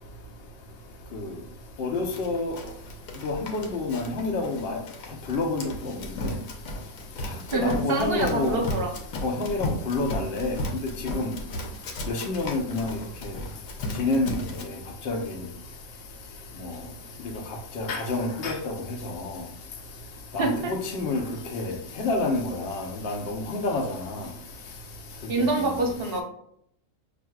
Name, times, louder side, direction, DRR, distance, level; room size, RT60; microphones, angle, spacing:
voice 1, 1.8-2.6 3.2-4.8 5.3-5.7 6.2-6.3 7.5-8.6 9.2-10.6 11.1-11.3 12.1-12.9 14.0-14.3 15.1-15.2 17.8-18.7 20.3-20.5 20.9-21.2 21.5-23.8 25.4-25.5, left 3 dB, 55° left, 0.9 m, -27 dB
Run, 2.1-14.6, left 1 dB, 80° left, 1.1 m, -35 dB
voice 2, 7.5-8.9 20.4-20.7 25.3-26.2, right 2 dB, 50° right, 0.9 m, -26 dB
5.9 x 2.6 x 2.3 m
omnidirectional pair, 1.4 m